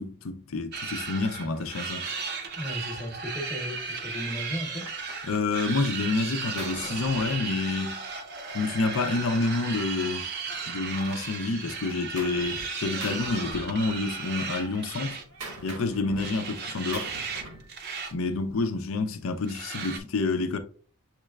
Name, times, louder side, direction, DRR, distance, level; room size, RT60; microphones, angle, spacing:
voice 1, 0.0-2.0 5.2-8.0 8.5-10.2 10.7-15.2 15.6-17.1 18.1-20.6, left 3 dB, 65° left, 0.5 m, -28 dB
sound 1, 0.7-15.7 16.2-17.4 17.7-18.1 18.4-18.5 19.5-20.0, right 5 dB, 50° right, 0.6 m, -35 dB
voice 2, 2.6-4.9, left 1 dB, 15° left, 1.0 m, -35 dB
Gunshot gunfire, 3.8-4.0 4.5-6.0 6.3-8.0 8.9-10.8 11.1-12.7 13.0-14.2 14.5-17.7, right 2 dB, 80° right, 1.1 m, -44 dB
6.5 x 3.2 x 2.3 m
head